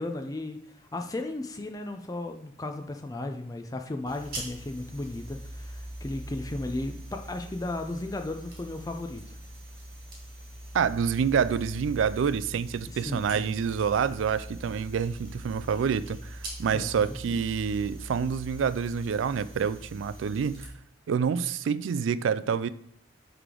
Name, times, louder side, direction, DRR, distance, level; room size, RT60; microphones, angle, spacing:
voice 1, 0.0-9.4 12.9-13.5 16.7-17.1, left 2 dB, 20° left, 0.4 m, -35 dB
sound 1, 4.1-20.7, right 1 dB, 45° right, 1.9 m, -42 dB
voice 2, 10.7-20.7 21.1-22.7, right 6 dB, 75° right, 0.3 m, -27 dB
9.3 x 3.4 x 3.8 m
head